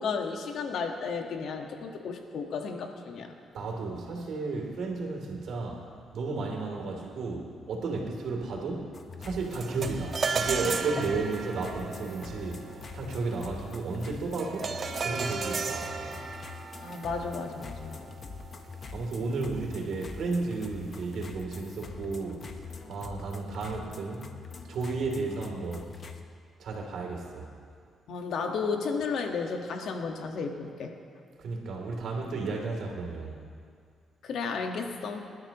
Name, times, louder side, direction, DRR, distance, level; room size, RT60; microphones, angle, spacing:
voice 1, 0.0-3.3 11.0-11.2 16.8-18.0 28.1-30.9 34.2-35.3, left 5 dB, 70° left, 3 dB, 1.4 m, -33 dB
voice 2, 3.5-8.9 9.2-12.7 12.9-14.7 15.0-16.2 18.9-22.5 22.9-24.4 24.7-25.9 26.6-27.5 31.4-33.4, right 3 dB, 70° right, 0 dB, 3.0 m, -33 dB
sound 1, 8.9-26.2, left 5 dB, 45° left, 1.1 m, -44 dB
sound 2, 9.6-19.1, right 5 dB, 45° right, 1.0 m, -35 dB
24.5 x 12.0 x 3.0 m, 2.2 s
cardioid pair, 85°, 0 cm